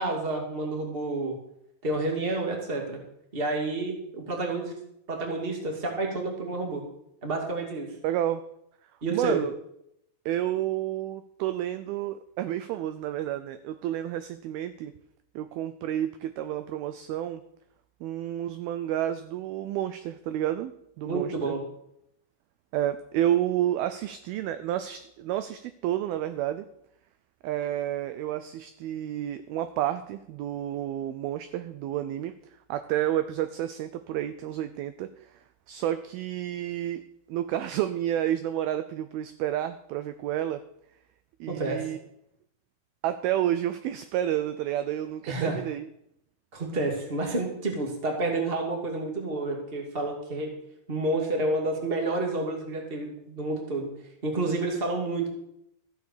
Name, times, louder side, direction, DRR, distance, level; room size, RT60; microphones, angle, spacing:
voice 1, 0.0-1.3 1.8-3.0 3.3-4.7 5.1-6.8 7.2-7.9 9.0-9.4 21.1-21.6 41.5-41.9 45.2-45.6 46.5-50.5 50.9-55.3, right 2 dB, 20° right, 1 dB, 1.4 m, -29 dB
voice 2, 8.0-8.5 9.1-9.5 10.3-14.9 15.4-17.4 18.0-21.6 22.7-26.7 27.4-32.3 32.7-37.0 37.3-40.6 41.4-42.0 43.0-45.9, right 12 dB, 90° right, 11 dB, 2.1 m, -30 dB
14.5 x 7.3 x 6.7 m, 0.76 s
omnidirectional pair, 5.0 m